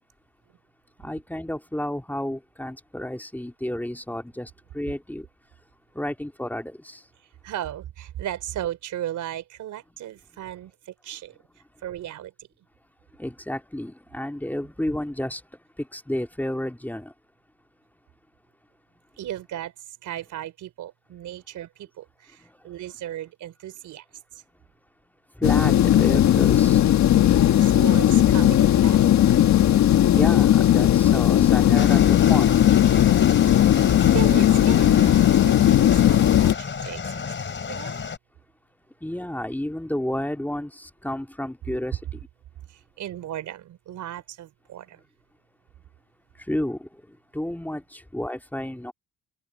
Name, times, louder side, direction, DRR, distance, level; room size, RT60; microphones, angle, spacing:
voice 1, 1.0-5.3 5.9-7.0 13.2-15.4 15.8-17.1 22.4-22.5 25.4-26.8 30.1-32.5 39.0-42.0 46.5-46.9 47.3-48.9, left 1 dB, 5° left, 2.8 m, -31 dB
voice 2, 7.4-11.4 11.8-12.3 19.2-24.1 24.3-24.4 27.1-29.5 33.7-37.3 37.7-38.0 42.7-45.0, right 12 dB, 80° right, 3.9 m, -36 dB
sound 1, 25.4-36.5, left 11 dB, 65° left, 1.6 m, -17 dB
sound 2, 31.7-38.2, left 5 dB, 40° left, 4.0 m, -31 dB
open air
cardioid pair, 90°, 30 cm